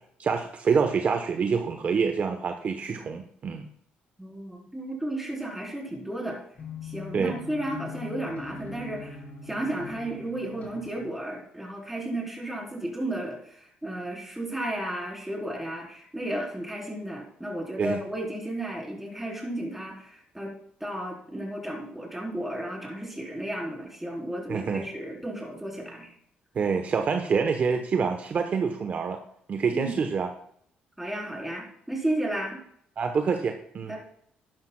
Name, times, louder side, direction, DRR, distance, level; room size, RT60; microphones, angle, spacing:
voice 1, 0.2-3.7 7.1-7.3 17.8-18.0 24.5-24.9 26.5-29.2 29.5-30.3 33.0-34.0, right 5 dB, 45° right, 5 dB, 0.9 m, -26 dB
voice 2, 4.2-6.4 6.8-20.5 20.8-26.1 29.7-30.0 31.0-32.6 33.9-34.0, right 1 dB, 5° right, -1 dB, 3.8 m, -33 dB
sound 1, 6.6-11.1, left 4 dB, 45° left, 3.3 m, -41 dB
12.0 x 10.5 x 2.3 m, 0.66 s
cardioid pair, 85°, 4 cm